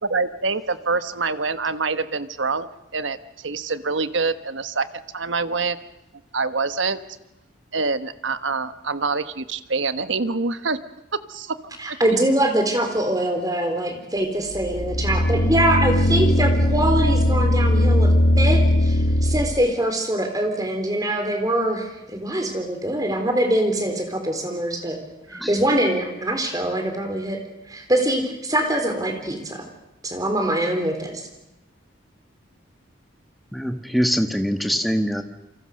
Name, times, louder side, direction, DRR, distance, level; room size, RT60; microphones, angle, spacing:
voice 1, 0.0-2.7 2.9-4.9 5.1-5.8 6.3-7.0 7.7-10.8 11.3-11.6 11.9-12.0, right 4 dB, 75° right, 12 dB, 1.3 m, -25 dB
voice 2, 11.8-25.0 25.5-27.4 27.7-29.7 30.0-31.1, right 1 dB, 20° right, 5 dB, 3.9 m, -23 dB
sound 1, 14.5-19.6, left 1 dB, 70° left, 1.6 m, -19 dB
voice 3, 25.3-25.6 33.5-35.2, equal, ahead, 7 dB, 1.6 m, -23 dB
28.5 x 24.5 x 6.6 m, 0.92 s
head